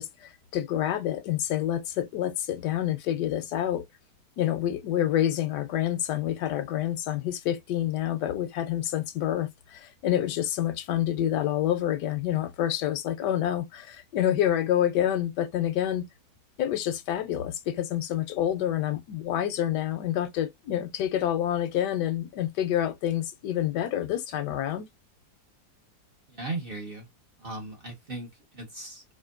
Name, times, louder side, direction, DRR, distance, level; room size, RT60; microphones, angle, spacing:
voice 1, 0.0-3.9 4.4-16.1 16.6-24.9, left 11 dB, 80° left, 1.2 m, -28 dB
voice 2, 26.3-27.1 27.4-29.0, right 2 dB, 45° right, 0.9 m, -37 dB
4.3 x 2.5 x 2.4 m
omnidirectional pair, 1.8 m